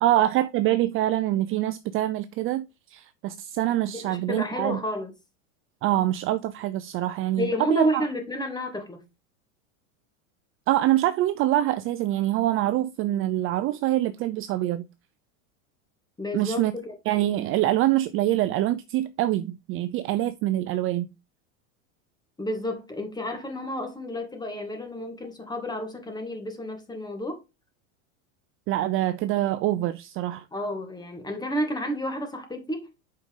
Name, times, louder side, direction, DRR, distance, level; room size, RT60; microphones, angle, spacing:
voice 1, 0.0-2.7 2.9-4.8 5.8-8.0 10.7-14.9 16.3-16.7 17.1-21.1 28.7-30.4, right 14 dB, 35° right, 0.5 m, -25 dB
voice 2, 3.9-5.1 7.4-9.0 16.2-16.9 22.4-27.4 30.5-32.9, equal, 10° left, 2.2 m, -31 dB
8.1 x 5.5 x 3.7 m
supercardioid pair, 125°, 40 cm